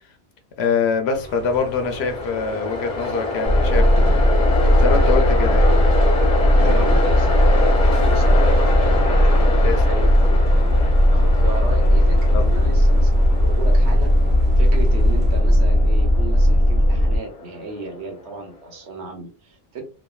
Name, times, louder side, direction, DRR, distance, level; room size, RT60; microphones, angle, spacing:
voice 1, 0.6-4.2 4.8-5.7 6.6-6.9 9.6-9.8 12.3-12.5, left 5 dB, 75° left, 5 dB, 0.9 m, -24 dB
sound 1, 1.1-15.4, left 1 dB, 55° right, 0.9 m, -40 dB
Train, 1.2-18.4, left 2 dB, 40° left, 0.8 m, -27 dB
sound 2, 3.5-17.2, equal, 25° right, 0.9 m, -16 dB
voice 2, 6.6-7.4 7.9-14.1 14.6-19.8, right 3 dB, 85° right, 3 dB, 1.1 m, -34 dB
3.1 x 2.2 x 2.3 m, 0.35 s
omnidirectional pair, 1.1 m